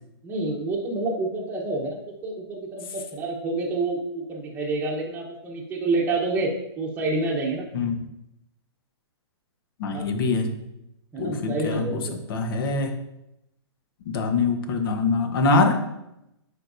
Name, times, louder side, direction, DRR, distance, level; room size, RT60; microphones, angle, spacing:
voice 1, 0.2-6.5 6.8-7.7 9.9-10.0 11.1-12.0, right 2 dB, 10° right, -2 dB, 1.0 m, -28 dB
voice 2, 9.8-10.5 11.2-12.0 12.3-12.9 14.0-15.8, left 3 dB, 55° left, 6 dB, 1.2 m, -23 dB
9.7 x 4.7 x 2.7 m, 0.86 s
hypercardioid pair, 145°, 15 cm